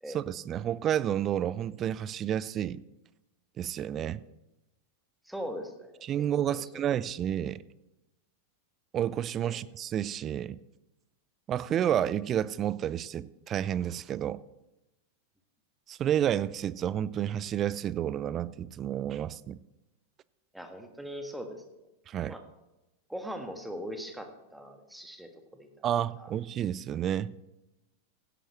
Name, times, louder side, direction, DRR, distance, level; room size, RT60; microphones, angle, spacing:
voice 1, 0.1-2.8 3.6-4.2 6.0-7.6 8.9-10.6 11.5-14.4 15.9-19.6 22.1-22.4 25.8-27.3, right 10 dB, 30° right, 0.4 m, -30 dB
voice 2, 5.2-6.9 9.4-9.6 20.5-21.6 22.3-22.4 23.1-25.7 26.2-26.3, equal, ahead, 1.6 m, -41 dB
16.0 x 11.0 x 3.1 m
figure-of-eight pair, 90°, 0 cm